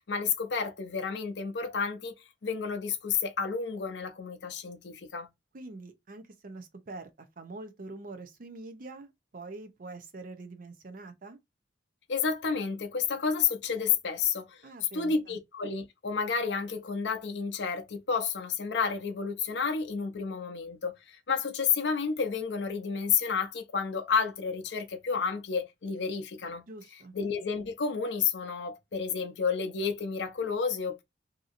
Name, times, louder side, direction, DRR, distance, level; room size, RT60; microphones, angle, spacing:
voice 1, 0.1-2.1 2.4-5.3 12.1-14.6 14.9-20.9 21.3-26.6 27.1-31.0, left 6 dB, 75° left, 0.6 m, -30 dB
voice 2, 5.5-11.4 14.6-15.4 26.7-27.1, right 2 dB, 50° right, 0.5 m, -45 dB
2.8 x 2.6 x 2.5 m
head